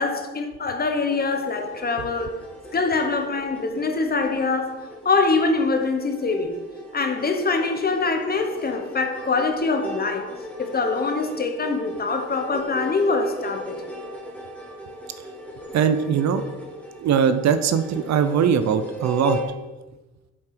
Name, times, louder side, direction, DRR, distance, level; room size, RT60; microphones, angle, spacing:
voice 1, 0.0-2.4 2.7-6.6 6.9-10.3 10.6-13.8, left 3 dB, 30° left, 1.0 m, -24 dB
sound 1, 0.7-19.5, equal, 5° left, 1.8 m, -37 dB
voice 2, 15.7-16.4 17.0-19.4, right 7 dB, 65° right, 0.6 m, -21 dB
7.2 x 4.5 x 4.8 m
cardioid pair, 90°, 30 cm